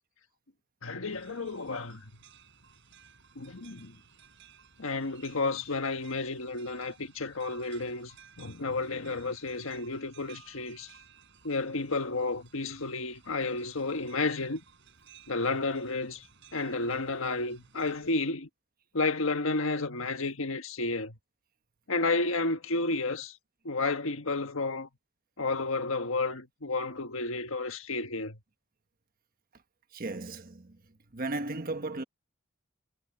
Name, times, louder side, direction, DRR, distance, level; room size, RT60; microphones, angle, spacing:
voice 1, 0.8-2.1 3.3-3.9 4.8-10.9 11.4-14.6 15.3-16.2 16.5-18.5 18.9-21.2 21.9-23.4 23.6-24.9 25.4-28.4, left 3 dB, 80° left, 1.5 m, -31 dB
sound 1, 1.1-18.1, right 7 dB, 60° right, 6.6 m, -58 dB
voice 2, 29.9-30.7 31.1-32.0, right 2 dB, 45° right, 1.3 m, -35 dB
head